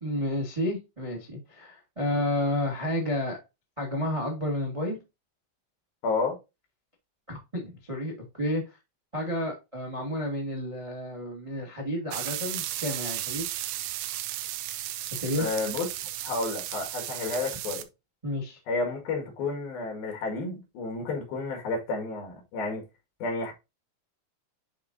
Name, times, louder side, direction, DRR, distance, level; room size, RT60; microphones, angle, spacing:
voice 1, 0.0-3.4 3.8-5.0 7.3-8.6 9.1-13.5 15.2-15.5 18.2-18.6, left 1 dB, 60° right, 0.3 m, -31 dB
voice 2, 6.0-6.4 15.3-15.9 16.2-17.8 18.7-22.8 23.2-23.5, left 3 dB, 80° left, 3.8 m, -31 dB
sound 1, 12.1-17.8, right 14 dB, 80° right, 2.3 m, -34 dB
10.5 x 3.7 x 2.6 m
omnidirectional pair, 4.2 m